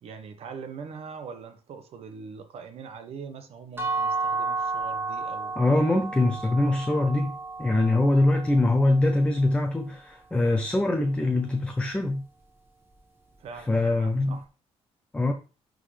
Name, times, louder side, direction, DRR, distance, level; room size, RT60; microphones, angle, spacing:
voice 1, 0.0-5.5 13.4-14.5, right 5 dB, 60° right, 1.2 m, -42 dB
sound 1, 3.8-9.6, right 4 dB, 20° right, 1.5 m, -32 dB
voice 2, 5.6-12.2 13.5-14.4 15.1-15.3, left 2 dB, 10° left, 0.7 m, -23 dB
10.5 x 3.9 x 3.3 m
cardioid pair, 140°, 11 cm